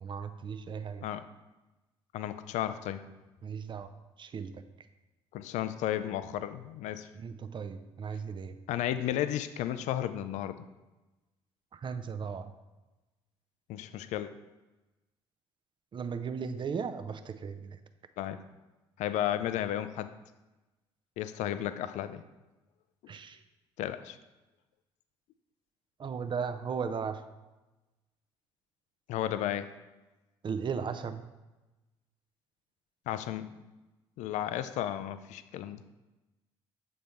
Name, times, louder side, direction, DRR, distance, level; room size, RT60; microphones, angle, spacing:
voice 1, 0.0-1.1 3.4-3.9 4.2-4.6 7.1-8.5 11.7-12.5 15.9-17.8 23.1-23.4 26.0-27.2 30.4-31.3, right 6 dB, 35° right, 10 dB, 0.5 m, -36 dB
voice 2, 2.1-3.1 5.3-7.1 8.7-10.6 13.7-14.3 18.2-18.4 19.0-20.1 21.2-22.2 23.8-24.2 29.1-29.7 33.1-33.5 34.2-35.8, left 11 dB, 55° left, 12 dB, 0.4 m, -33 dB
7.3 x 4.2 x 3.4 m, 1.1 s
figure-of-eight pair, 50°, 14 cm